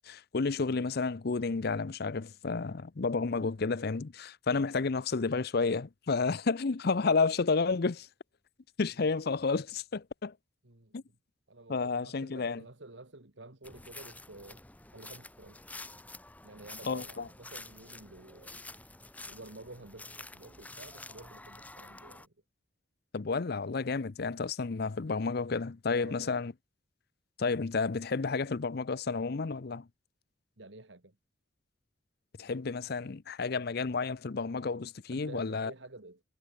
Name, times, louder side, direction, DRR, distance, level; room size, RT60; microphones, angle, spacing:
voice 1, 0.0-8.1 8.8-10.3 10.9-11.0 11.7-12.6 16.9-17.3 23.1-26.5 27.4-29.9 32.4-35.7, left 4 dB, 55° left, 0.6 m, -31 dB
voice 2, 10.6-11.2 11.5-14.6 14.9-15.6 16.4-18.6 19.3-22.3 26.0-26.4 30.6-31.2 35.1-36.2, right 2 dB, 65° right, 2.1 m, -51 dB
sound 1, 13.6-22.3, left 2 dB, 10° left, 1.0 m, -49 dB
head